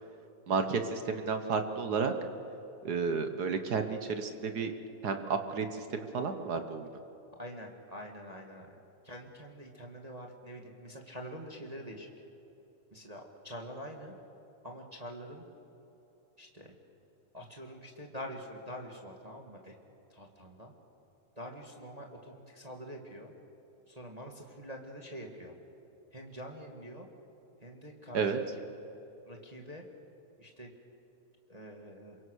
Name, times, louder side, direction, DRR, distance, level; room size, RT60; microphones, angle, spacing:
voice 1, 0.5-2.1 2.8-4.7 5.0-6.9 28.1-28.4, right 5 dB, 60° right, 7 dB, 1.0 m, -32 dB
voice 2, 7.4-8.7 9.0-12.1 12.9-14.2 14.6-15.5 16.4-16.7 17.3-19.7 20.1-20.7 21.4-23.3 23.9-25.6 26.1-27.1 27.6-28.3 29.2-29.8 30.4-30.7 31.5-32.2, equal, 15° right, 2 dB, 1.4 m, -45 dB
27.5 x 23.5 x 6.4 m, 3.0 s
omnidirectional pair, 3.4 m